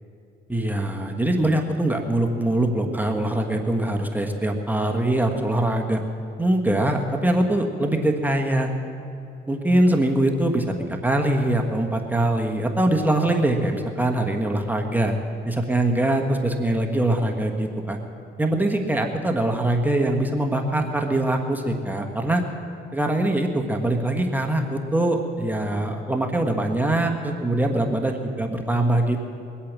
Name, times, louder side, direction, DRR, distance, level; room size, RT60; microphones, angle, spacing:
voice 1, 0.5-6.0 6.4-8.7 9.5-15.2 15.4-18.0 18.4-22.4 22.9-29.2, right 1 dB, 10° right, 2 dB, 1.3 m, -23 dB
21.5 x 8.6 x 7.4 m, 2.6 s
cardioid pair, 90°, 20 cm